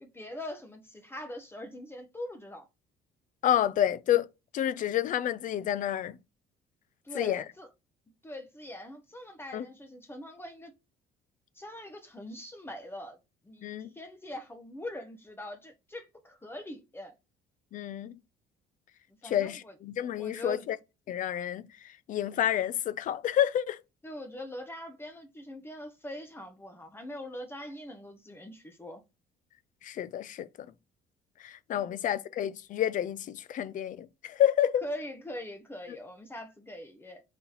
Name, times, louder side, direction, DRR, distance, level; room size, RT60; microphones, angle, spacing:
voice 1, 0.0-2.7 7.0-7.7 8.2-10.7 11.5-13.2 13.4-13.7 13.9-17.1 19.2-19.7 20.1-20.7 24.0-29.0 31.7-31.9 34.8-37.2, left 1 dB, 15° left, 0.7 m, -42 dB
voice 2, 3.4-4.3 4.5-6.2 7.2-7.4 9.5-9.7 13.6-13.9 17.7-18.2 19.2-20.8 21.1-23.8 29.8-30.5 31.4-34.8, left 11 dB, 50° left, 0.4 m, -29 dB
4.1 x 2.9 x 3.9 m
cardioid pair, 110°, 17 cm